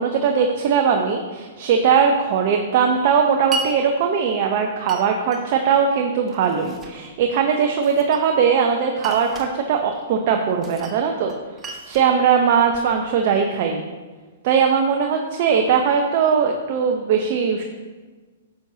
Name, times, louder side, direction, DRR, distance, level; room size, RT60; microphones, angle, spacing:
voice 1, 0.0-11.3 11.9-13.8 14.4-17.6, right 6 dB, 50° right, 3 dB, 0.8 m, -20 dB
Glass, 3.5-3.7 4.9-5.4 6.3-7.0 7.8-8.5 9.0-9.5 10.6-11.0 11.3-12.9, right 3 dB, 20° right, 1.2 m, -34 dB
9.8 x 7.2 x 2.9 m, 1.4 s
hypercardioid pair, 125°, 0 cm